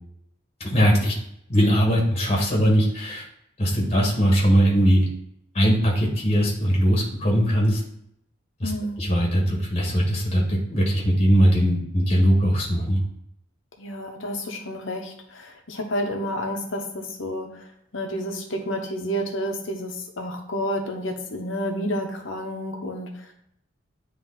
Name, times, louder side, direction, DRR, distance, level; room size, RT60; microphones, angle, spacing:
voice 1, 0.6-1.1 1.5-3.2 3.6-5.0 5.5-7.8 8.6-8.7 9.0-13.0, equal, 30° left, -2 dB, 1.6 m, -20 dB
voice 2, 8.6-9.0 13.8-23.3, equal, 70° left, 3 dB, 1.0 m, -30 dB
9.1 x 3.3 x 3.9 m, 0.75 s
head